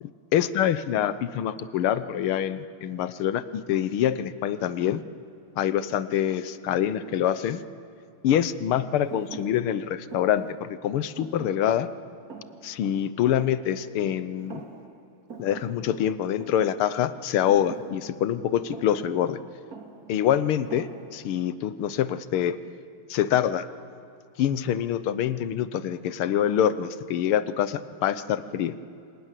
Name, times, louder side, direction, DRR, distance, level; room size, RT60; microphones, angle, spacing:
voice 1, 0.0-5.0 5.6-7.6 8.2-11.9 12.6-14.6 15.4-19.4 20.1-22.6 23.1-23.7 24.4-28.8, left 10 dB, 90° left, 13 dB, 1.8 m, -25 dB
Thump thud, 9.1-14.1 14.4-15.0 15.3-21.4, right 4 dB, 45° right, 2.5 m, -45 dB
28.5 x 25.5 x 7.5 m, 2.6 s
omnidirectional pair, 2.3 m